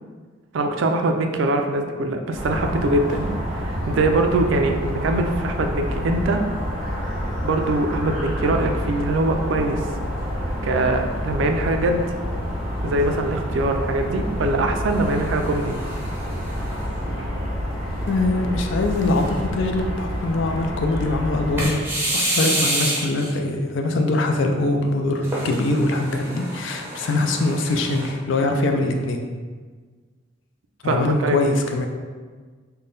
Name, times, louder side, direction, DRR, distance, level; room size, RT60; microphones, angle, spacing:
voice 1, 0.5-6.4 7.4-9.8 10.6-12.0 12.8-15.8 17.0-17.3 30.8-31.4, right 2 dB, 65° right, 5 dB, 0.4 m, -22 dB
sound 1, 2.3-21.7, equal, 20° left, 1.4 m, -28 dB
sound 2, 14.9-17.4 18.0-18.1 18.8-19.5 21.6-23.3 25.2-28.1, right 1 dB, 10° right, 0.6 m, -29 dB
voice 2, 18.1-21.9 22.1-29.2 30.8-31.9, left 2 dB, 65° left, 4 dB, 0.4 m, -23 dB
3.6 x 2.2 x 3.9 m, 1.5 s
head